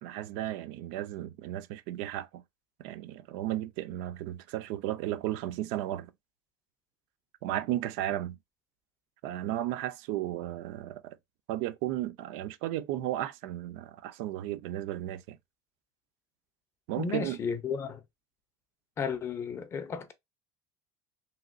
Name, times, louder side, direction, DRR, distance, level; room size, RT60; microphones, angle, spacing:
voice 1, 0.0-2.4 2.8-6.1 7.4-8.4 9.2-11.2 11.5-15.4 16.9-17.4, right 13 dB, 70° right, 0.4 m, -34 dB
voice 2, 17.0-18.0 19.0-20.1, left 6 dB, 25° left, 0.5 m, -33 dB
2.9 x 2.9 x 2.4 m
cardioid pair, 140°, 10 cm